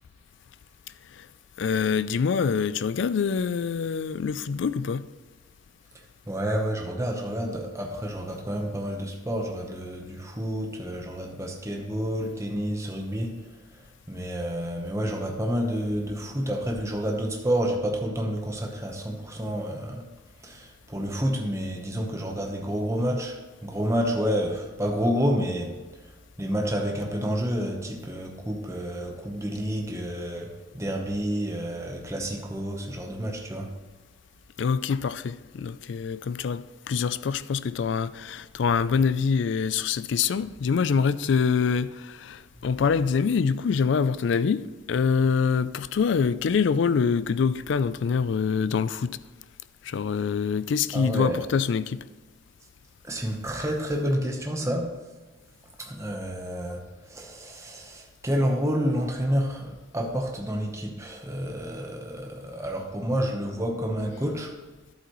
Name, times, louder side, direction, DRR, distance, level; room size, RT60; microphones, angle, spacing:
voice 1, 1.6-5.1 34.6-49.2 49.8-52.0, left 6 dB, 65° left, 0.3 m, -25 dB
voice 2, 6.3-13.4 14.1-20.1 20.4-25.7 26.4-33.7 50.9-51.4 53.0-54.9 55.8-64.6, equal, 15° right, 0.9 m, -29 dB
11.0 x 8.1 x 3.1 m
head